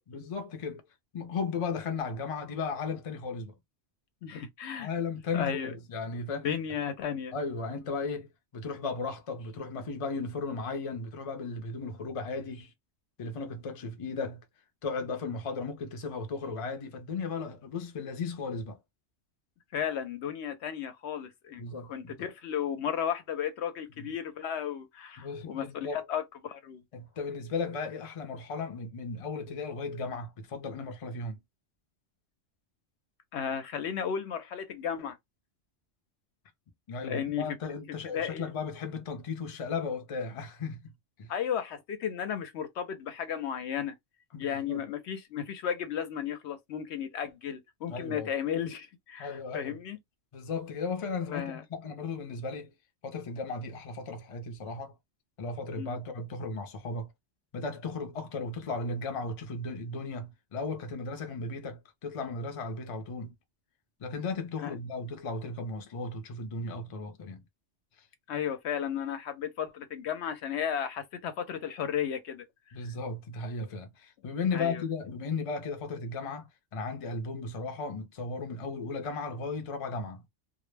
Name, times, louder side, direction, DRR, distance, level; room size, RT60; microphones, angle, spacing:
voice 1, 0.1-0.8 1.1-3.5 4.8-6.5 7.3-12.7 13.2-14.4 14.8-18.8 21.6-22.3 24.0-24.1 25.2-26.0 26.9-31.4 36.9-40.9 41.2-41.3 44.3-44.8 47.9-48.3 49.2-49.8 50.3-52.7 53.0-54.9 55.4-57.1 57.5-63.3 64.0-67.4 72.7-80.2, left 4 dB, 45° left, 0.5 m, -35 dB
voice 2, 4.2-4.9 5.3-5.7 6.4-7.3 19.7-21.6 21.9-26.8 33.3-35.2 37.0-37.4 38.1-38.5 41.3-44.0 44.4-50.0 51.3-51.6 55.8-56.0 64.6-64.7 68.3-72.4 74.5-74.8, left 8 dB, 70° left, 0.8 m, -34 dB
2.1 x 2.0 x 3.1 m
omnidirectional pair, 1.2 m